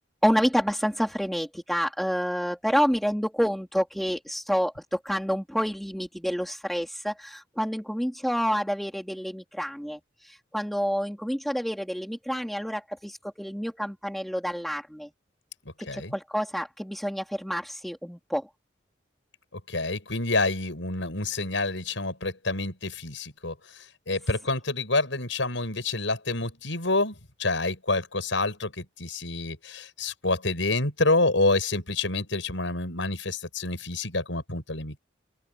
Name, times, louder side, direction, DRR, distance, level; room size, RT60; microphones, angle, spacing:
voice 1, 0.2-15.1 15.8-18.5, equal, ahead, 3.7 m, -28 dB
voice 2, 15.8-16.1 19.5-35.0, left 2 dB, 90° left, 6.7 m, -28 dB
open air
head